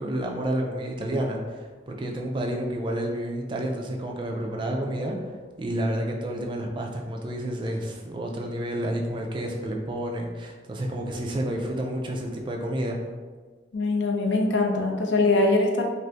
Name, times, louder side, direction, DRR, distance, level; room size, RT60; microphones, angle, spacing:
voice 1, 0.0-13.0, right 1 dB, 25° right, 1 dB, 0.3 m, -30 dB
voice 2, 13.7-15.8, left 2 dB, 70° left, 1 dB, 0.5 m, -22 dB
2.6 x 2.4 x 3.2 m, 1.4 s
head